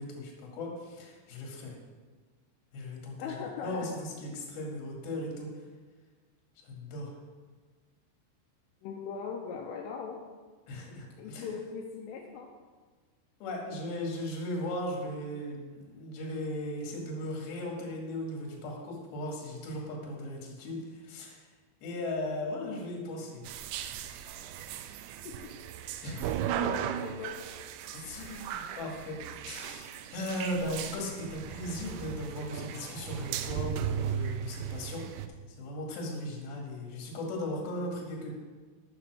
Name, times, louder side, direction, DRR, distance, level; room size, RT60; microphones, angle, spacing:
voice 1, 0.0-1.7 2.7-3.3 3.6-5.5 6.6-7.1 10.7-11.5 13.4-21.4 21.8-23.5 26.0-26.5 27.9-29.2 29.5-35.0 35.6-38.3, left 1 dB, 55° left, 0 dB, 3.7 m, -37 dB
voice 2, 3.2-4.0 8.8-10.2 11.2-12.5 25.2-25.3 26.6-27.7, left 6 dB, 80° left, -1 dB, 3.4 m, -40 dB
sound 1, 23.4-35.3, right 10 dB, 90° right, 2.5 m, -37 dB
11.5 x 7.3 x 6.2 m, 1.4 s
omnidirectional pair, 5.8 m